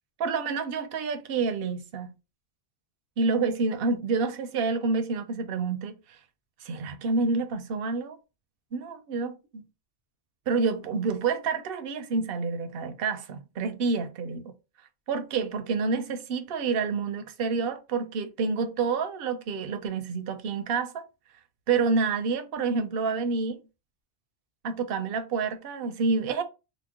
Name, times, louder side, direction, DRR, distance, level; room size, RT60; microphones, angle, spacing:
voice 1, 0.2-2.1 3.2-6.0 6.6-8.2 8.7-9.6 10.5-14.5 15.1-21.0 21.7-23.6 24.6-26.4, right 4 dB, 60° right, 0.7 m, -28 dB
2.9 x 2.1 x 3.5 m
omnidirectional pair, 1.2 m